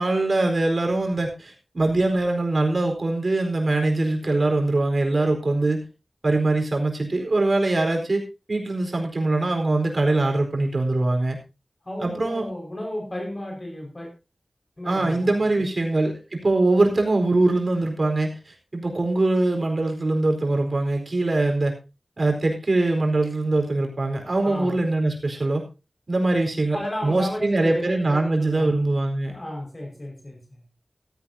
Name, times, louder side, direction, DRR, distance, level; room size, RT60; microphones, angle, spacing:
voice 1, 0.0-5.8 6.2-8.2 8.5-11.4 12.0-12.4 14.8-21.7 22.2-25.6 26.1-29.3, right 2 dB, 60° right, 3 dB, 4.3 m, -22 dB
voice 2, 11.8-14.1 14.8-15.6 24.4-24.8 26.7-29.0 29.3-30.6, left 1 dB, 35° left, 1 dB, 5.3 m, -34 dB
15.0 x 14.5 x 2.8 m, 0.28 s
wide cardioid pair, 75°, 0 cm